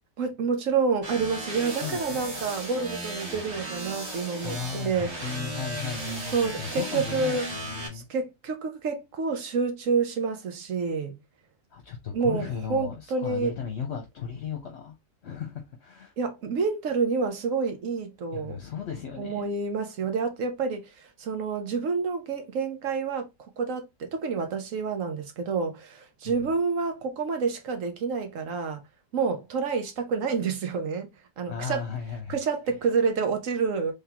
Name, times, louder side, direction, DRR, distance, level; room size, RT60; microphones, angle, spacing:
voice 1, 0.2-5.1 6.3-7.5 7.9-11.2 12.1-13.5 16.2-18.6 19.2-23.3 23.6-28.8 29.1-31.1 31.4-31.8 32.3-33.9, right 5 dB, 75° right, 1.3 m, -28 dB
sound 1, 1.0-7.9, right 2 dB, 55° right, 1.6 m, -36 dB
voice 2, 1.8-2.5 4.4-8.1 11.7-14.9 15.2-16.1 18.3-19.5 26.2-26.4 31.5-32.4, left 7 dB, 60° left, 1.0 m, -36 dB
3.6 x 3.5 x 2.8 m
omnidirectional pair, 1.4 m